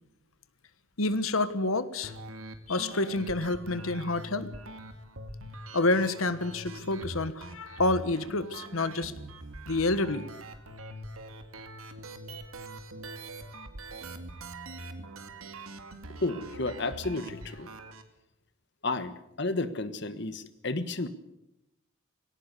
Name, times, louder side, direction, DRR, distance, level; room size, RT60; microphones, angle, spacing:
voice 1, 1.0-2.1 2.7-4.5 5.7-9.1 9.7-10.2, left 2 dB, 80° left, 13 dB, 1.4 m, -28 dB
sound 1, 2.0-18.0, right 1 dB, 90° right, 2.2 m, -43 dB
voice 2, 16.2-17.7 18.8-21.1, left 2 dB, 55° left, 12 dB, 1.4 m, -32 dB
19.5 x 17.5 x 8.3 m, 0.86 s
head